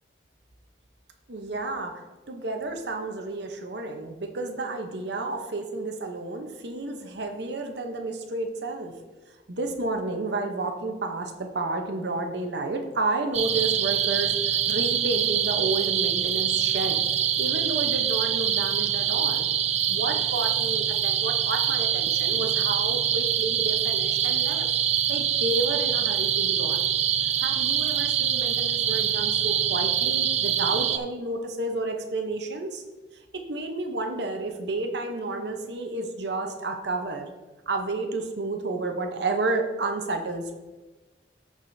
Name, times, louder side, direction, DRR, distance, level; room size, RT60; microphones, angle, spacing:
voice 1, 1.3-8.9 9.5-17.0 17.4-19.5 19.9-24.7 25.1-26.9 27.2-32.8 33.3-37.3 37.7-40.6, right 2 dB, 75° right, 4 dB, 0.8 m, -31 dB
sound 1, 13.3-31.0, right 9 dB, 40° right, 0.3 m, -25 dB
14.0 x 4.9 x 2.7 m, 1.2 s
head